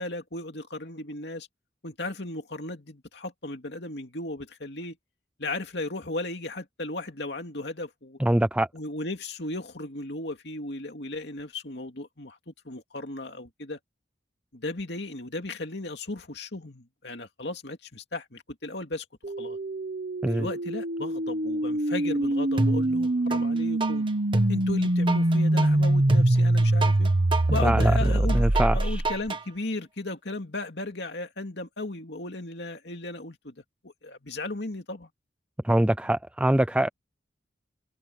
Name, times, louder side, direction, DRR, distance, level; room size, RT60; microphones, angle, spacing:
voice 1, 0.0-1.5 1.8-5.0 5.4-8.2 8.7-13.8 14.5-19.6 20.3-24.1 24.5-27.1 27.5-33.5 33.8-35.1, left 2 dB, 65° left, 2.6 m, -36 dB
voice 2, 8.2-8.7 20.2-20.5 27.6-29.0 35.6-36.9, right 1 dB, 5° right, 0.4 m, -24 dB
sound 1, 19.2-29.3, right 1 dB, 50° right, 1.1 m, -24 dB
sound 2, 22.6-23.4 23.8-29.4, right 2 dB, 25° right, 1.4 m, -27 dB
head